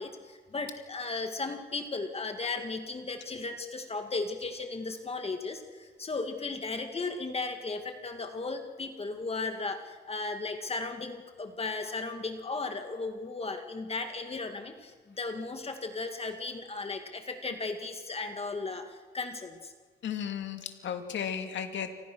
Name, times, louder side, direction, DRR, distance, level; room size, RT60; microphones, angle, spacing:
voice 1, 0.0-19.7, left 3 dB, 30° left, 6 dB, 2.3 m, -36 dB
voice 2, 20.0-21.9, left 8 dB, 70° left, 6 dB, 2.5 m, -34 dB
29.0 x 25.0 x 6.4 m, 1.5 s
cardioid pair, 90°, 20 cm